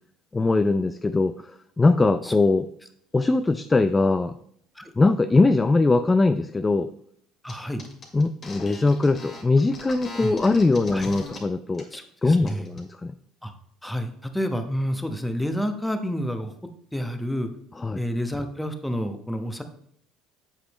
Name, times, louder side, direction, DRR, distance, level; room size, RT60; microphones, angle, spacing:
voice 1, 0.3-1.3 1.8-2.7 3.1-4.3 5.0-6.9 8.1-11.8 12.2-13.1 17.8-18.0, left 3 dB, 20° left, 10 dB, 0.4 m, -21 dB
voice 2, 7.4-7.8 10.2-10.3 10.9-11.1 11.9-12.7 13.4-13.5 13.8-16.5 16.9-17.5 17.9-19.6, equal, 5° left, 7 dB, 1.0 m, -29 dB
sound 1, 7.5-7.6 7.8-11.4 11.7-12.0 12.3-12.8, left 3 dB, 40° left, 2.3 m, -40 dB
8.1 x 6.0 x 3.1 m, 0.66 s
hypercardioid pair, 75°, 0 cm